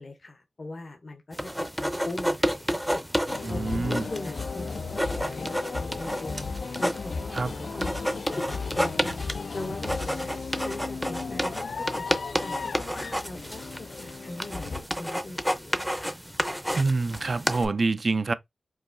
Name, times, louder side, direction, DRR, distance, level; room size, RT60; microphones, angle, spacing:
voice 1, 0.0-6.5 6.8-7.4 7.7-9.2 9.5-10.3 10.6-12.1 12.4-16.2, left 2 dB, 50° left, 0.7 m, -40 dB
sound 1, 1.3-17.7, equal, ahead, 0.5 m, -31 dB
sound 2, 3.3-14.8, left 4 dB, 75° left, 0.3 m, -35 dB
voice 2, 3.4-4.1 7.3-7.5 16.7-18.3, right 3 dB, 50° right, 0.3 m, -26 dB
4.7 x 2.7 x 2.5 m
wide cardioid pair, 85°, 0 cm